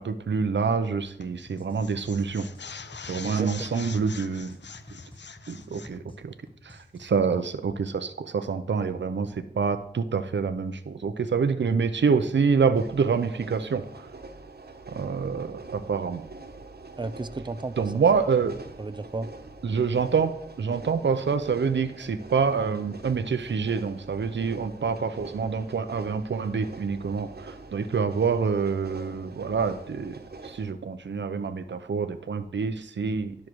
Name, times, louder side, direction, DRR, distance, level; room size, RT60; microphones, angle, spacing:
voice 1, 0.0-2.5 3.1-4.6 5.5-6.3 6.6-14.1 14.9-16.3 17.8-18.6 19.6-20.3 20.6-30.2 30.4-33.4, right 5 dB, 90° right, 9 dB, 0.6 m, -26 dB
sound 1, 1.2-1.5 1.7-6.0, left 6 dB, 80° left, 0.6 m, -43 dB
sound 2, 1.3-7.4, left 1 dB, 30° left, 1.5 m, -49 dB
voice 2, 3.2-3.8 17.0-18.0 18.8-19.3, right 3 dB, 25° right, 13 dB, 0.5 m, -34 dB
sound 3, 12.7-30.7, right 3 dB, 60° right, 1.2 m, -45 dB
10.5 x 6.4 x 4.6 m, 0.77 s
wide cardioid pair, 60°, 18 cm